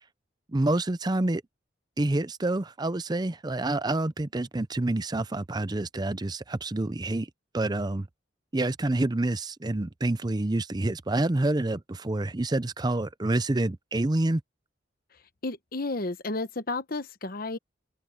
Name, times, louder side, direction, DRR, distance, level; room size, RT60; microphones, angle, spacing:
voice 1, 0.5-1.4 2.0-7.3 7.5-8.1 8.5-14.4, right 2 dB, 20° right, 0.6 m, -27 dB
voice 2, 15.4-17.6, left 2 dB, 50° left, 1.1 m, -32 dB
head